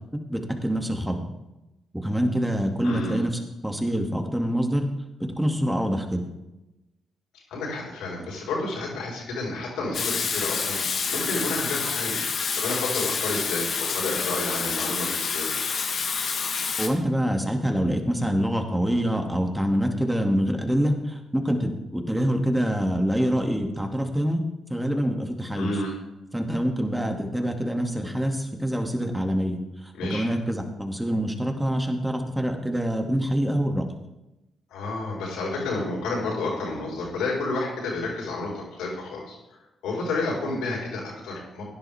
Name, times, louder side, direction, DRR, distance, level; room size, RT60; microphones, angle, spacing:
voice 1, 0.3-1.2 2.0-3.3 3.6-4.9 5.4-6.2 16.8-24.4 24.7-25.7 26.3-29.6 30.1-33.8, equal, 5° right, 3 dB, 2.4 m, -25 dB
voice 2, 2.8-3.2 7.5-10.8 11.1-15.5 25.6-25.9 29.9-30.2 34.7-39.4 39.8-41.6, left 2 dB, 75° left, -4 dB, 4.5 m, -30 dB
Water tap faucet / Sink (filling or washing), 9.9-16.9, left 5 dB, 55° left, 1.6 m, -28 dB
16.5 x 10.5 x 3.6 m, 0.96 s
hypercardioid pair, 40°, 0 cm